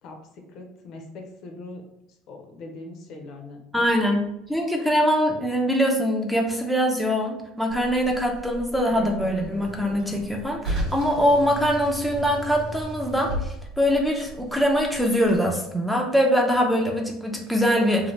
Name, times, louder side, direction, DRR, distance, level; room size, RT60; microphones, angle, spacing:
voice 1, 0.0-1.8 2.3-3.8, left 2 dB, 55° left, 3 dB, 0.6 m, -41 dB
voice 2, 3.7-4.2 4.5-18.1, equal, ahead, 0 dB, 0.5 m, -23 dB
Car, 7.7-15.4, right 1 dB, 75° right, 0.9 m, -35 dB
2.8 x 2.1 x 3.1 m, 0.79 s
supercardioid pair, 120°, 0 cm